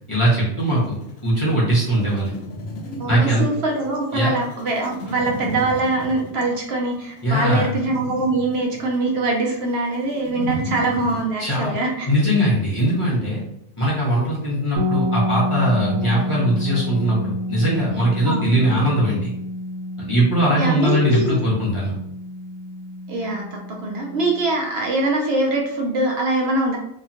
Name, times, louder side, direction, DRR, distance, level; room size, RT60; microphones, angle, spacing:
voice 1, 0.1-0.9 1.2-2.4 3.1-3.4 4.1-4.3 7.2-7.7 11.4-11.7 12.1-13.4 13.8-19.3 20.0-21.9, right 1 dB, 30° left, -7 dB, 0.7 m, -20 dB
sound 1, 0.6-11.3, equal, 85° left, 1.0 m, -35 dB
voice 2, 3.0-12.1 18.3-18.6 20.6-21.4 23.1-26.8, right 2 dB, 60° right, 0 dB, 0.8 m, -23 dB
sound 2, 14.8-24.5, left 1 dB, 90° right, 1.0 m, -29 dB
2.9 x 2.4 x 2.5 m, 0.77 s
omnidirectional pair, 1.4 m